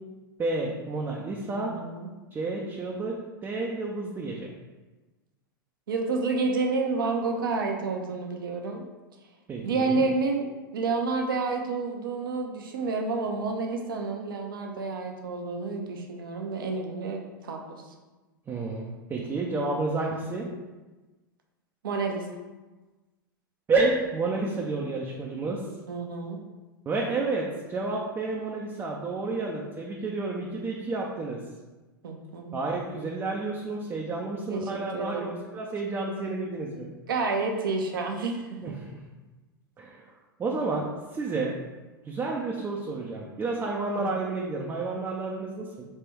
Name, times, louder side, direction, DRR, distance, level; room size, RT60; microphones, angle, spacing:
voice 1, 0.4-1.7 2.3-4.5 9.5-10.1 18.5-20.5 23.7-25.6 26.9-31.4 32.5-36.9 38.6-38.9 39.8-40.0 40.4-41.5 42.0-45.9, right 3 dB, 20° right, -2 dB, 0.6 m, -30 dB
voice 2, 1.5-2.1 5.9-8.8 9.6-10.5 10.7-17.8 20.0-20.4 21.8-22.3 25.9-26.4 32.0-32.6 34.5-35.4 37.1-38.8, right 3 dB, 70° right, 2 dB, 0.8 m, -29 dB
3.4 x 3.4 x 4.4 m, 1.2 s
figure-of-eight pair, 95°, 12 cm